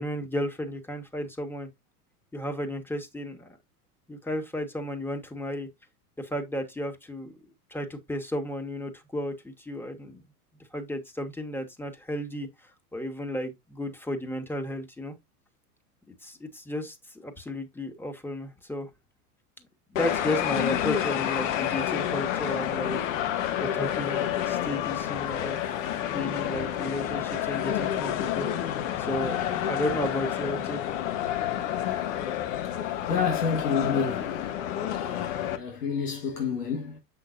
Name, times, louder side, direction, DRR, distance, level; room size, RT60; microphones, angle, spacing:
voice 1, 0.0-1.7 2.3-3.6 4.1-5.7 6.2-7.4 7.7-10.2 10.7-15.1 16.1-18.9 19.9-23.0 23.6-25.8 26.1-30.8, left 1 dB, 5° left, 1.6 m, -33 dB
sound 1, 20.0-35.6, left 11 dB, 55° left, 1.3 m, -29 dB
voice 2, 32.6-34.5 34.8-37.0, left 5 dB, 80° left, 1.8 m, -30 dB
7.9 x 5.9 x 2.6 m
hypercardioid pair, 95°, 46 cm